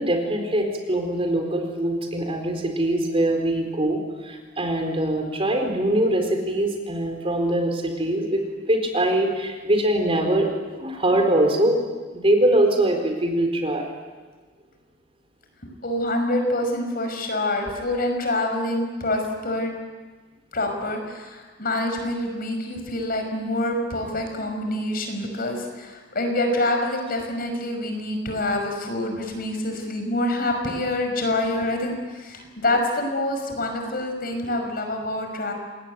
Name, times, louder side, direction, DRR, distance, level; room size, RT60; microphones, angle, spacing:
voice 1, 0.0-10.5 10.8-11.8 12.1-13.8, right 1 dB, 30° right, 4 dB, 4.3 m, -23 dB
voice 2, 15.8-19.7 20.5-35.5, left 1 dB, 50° left, 4 dB, 5.8 m, -26 dB
27.5 x 20.5 x 9.4 m, 1.4 s
head